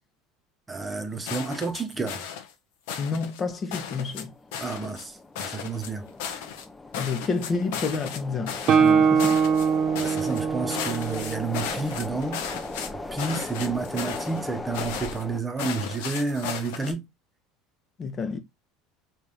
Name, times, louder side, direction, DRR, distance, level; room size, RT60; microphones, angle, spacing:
voice 1, 0.7-2.2 4.6-6.1 9.9-12.4 13.1-17.0, right 4 dB, 20° right, 1.0 m, -30 dB
sound 1, 1.3-2.5 2.9-3.4 3.7-4.2 4.5-5.0 5.3-6.6 6.9-8.2 8.5-8.9 9.2-9.7 9.9-10.4 10.7-12.9 13.2-14.4 14.7-15.2 15.6-16.9, left 8 dB, 75° left, 1.0 m, -35 dB
voice 2, 3.0-4.3 7.0-9.4 18.0-18.4, left 4 dB, 35° left, 1.0 m, -29 dB
sound 2, 3.9-15.4, left 2 dB, 15° left, 0.7 m, -38 dB
Guitar, 8.7-12.3, right 6 dB, 50° right, 0.9 m, -23 dB
3.4 x 3.2 x 4.2 m
hypercardioid pair, 90°, 0 cm